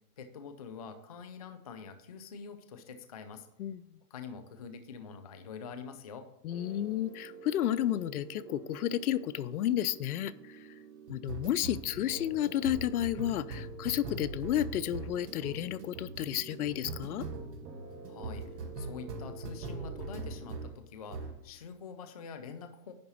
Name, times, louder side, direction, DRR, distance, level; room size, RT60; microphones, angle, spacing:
voice 1, 0.2-3.5 4.1-6.3 18.1-22.9, left 6 dB, 25° left, 9 dB, 0.3 m, -46 dB
voice 2, 6.4-10.7 11.1-17.3, left 12 dB, 65° left, 18 dB, 0.6 m, -32 dB
sound 1, 6.5-20.8 21.1-21.4, right 3 dB, 90° right, 2.3 m, -43 dB
10.5 x 3.9 x 6.9 m, 0.85 s
hypercardioid pair, 150°, 47 cm